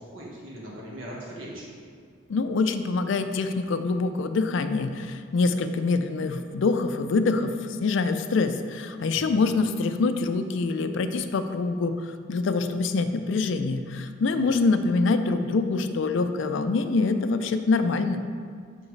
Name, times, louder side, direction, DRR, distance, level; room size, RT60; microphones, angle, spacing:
voice 1, 0.0-1.7 9.1-9.3 14.3-14.5, equal, 70° right, -4 dB, 1.6 m, -40 dB
voice 2, 2.3-18.2, left 3 dB, 65° left, 9 dB, 0.4 m, -25 dB
7.1 x 5.4 x 3.2 m, 2.1 s
head